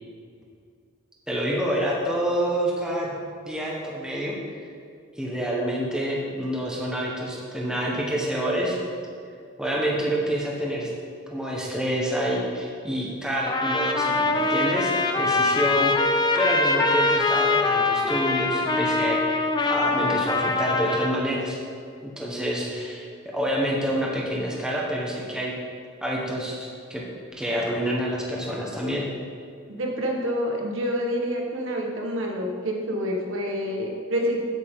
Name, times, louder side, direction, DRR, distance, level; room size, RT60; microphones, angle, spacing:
voice 1, 1.3-3.2 3.4-4.4 5.2-8.8 9.6-10.9 11.3-15.9 16.3-19.4 19.7-21.6 22.0-25.5 26.0-27.0 27.3-29.1, equal, 5° right, -3 dB, 1.3 m, -27 dB
Trumpet, 13.5-21.2, left 3 dB, 20° left, 0.6 m, -23 dB
voice 2, 29.7-34.4, equal, 80° right, 0 dB, 1.5 m, -27 dB
9.5 x 9.1 x 3.8 m, 2.4 s
head